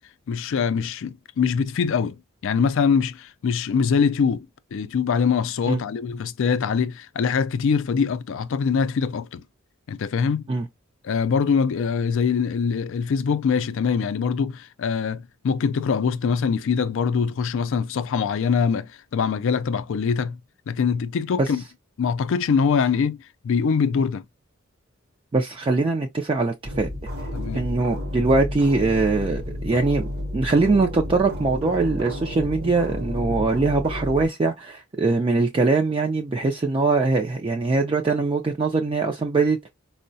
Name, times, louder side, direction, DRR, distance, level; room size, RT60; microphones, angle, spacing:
voice 1, 0.3-4.5 4.7-9.4 9.9-10.4 11.0-20.4 20.7-21.6 22.0-23.2 23.4-24.2 27.3-27.7, left 6 dB, 65° left, 0.4 m, -23 dB
voice 2, 25.3-26.9 27.5-39.7, right 3 dB, 25° right, 0.4 m, -22 dB
sound 1, 26.6-34.3, left 1 dB, 50° right, 0.8 m, -31 dB
4.4 x 2.1 x 2.6 m
head